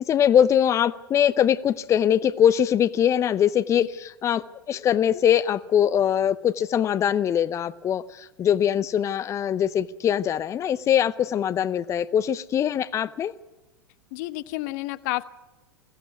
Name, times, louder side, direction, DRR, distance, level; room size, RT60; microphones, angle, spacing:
voice 1, 0.0-13.3, left 9 dB, 25° left, 16 dB, 0.6 m, -22 dB
voice 2, 14.1-15.2, left 19 dB, 50° left, 14 dB, 1.0 m, -30 dB
22.5 x 16.5 x 9.4 m, 1.1 s
figure-of-eight pair, 90°, 12 cm